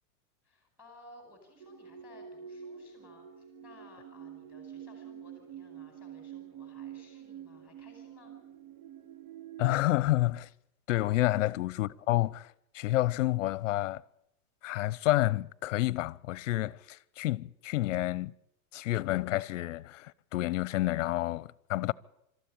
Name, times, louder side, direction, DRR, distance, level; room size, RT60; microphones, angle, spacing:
voice 1, 0.4-8.3 11.3-11.5, left 2 dB, 5° right, 4.9 m, -57 dB
sound 1, 1.6-9.8, right 9 dB, 60° right, 1.7 m, -47 dB
voice 2, 9.6-10.5 10.9-14.0 14.6-18.3 18.7-21.9, left 16 dB, 55° left, 0.7 m, -29 dB
26.0 x 13.5 x 8.7 m
supercardioid pair, 165°, 44 cm